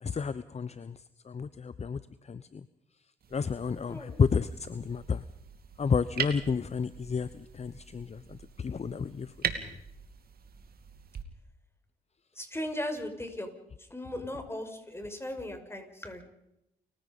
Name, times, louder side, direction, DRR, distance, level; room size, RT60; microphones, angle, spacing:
voice 1, 0.0-1.0 1.3-2.0 2.3-2.6 3.3-5.2 5.8-9.3, left 5 dB, 40° left, 15 dB, 0.9 m, -31 dB
sound 1, 3.2-11.2, right 7 dB, 65° right, 2.5 m, -41 dB
voice 2, 3.9-4.2 12.3-13.5 13.8-16.3, left 1 dB, 15° left, 6 dB, 6.1 m, -37 dB
29.5 x 16.0 x 5.5 m, 0.83 s
supercardioid pair, 55°, 17 cm